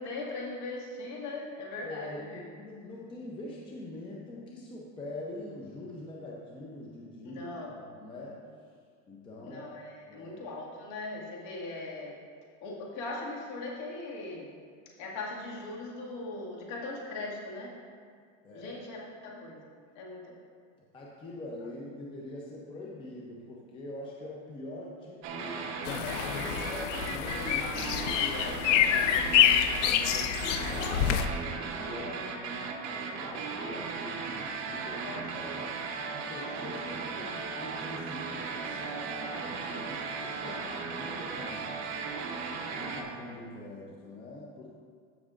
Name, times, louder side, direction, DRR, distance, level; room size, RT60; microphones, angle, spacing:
voice 1, 0.0-2.4 7.3-7.7 9.4-12.2 12.6-14.5 15.0-17.7 18.5-19.6 20.0-20.3 29.0-29.2 34.9-35.6 40.3-40.8, left 2 dB, 55° left, -3 dB, 2.1 m, -40 dB
voice 2, 1.8-8.4 9.1-9.6 10.1-10.4 18.4-18.8 20.8-25.6 26.3-31.3 31.8-35.7 36.1-41.8 42.7-44.7, left 1 dB, 15° left, -3 dB, 0.6 m, -44 dB
sound 1, 25.2-43.0, right 4 dB, 50° right, 1.0 m, -37 dB
sound 2, 25.9-31.3, left 10 dB, 90° left, 0.6 m, -27 dB
14.0 x 6.1 x 2.5 m, 2.1 s
supercardioid pair, 160°, 36 cm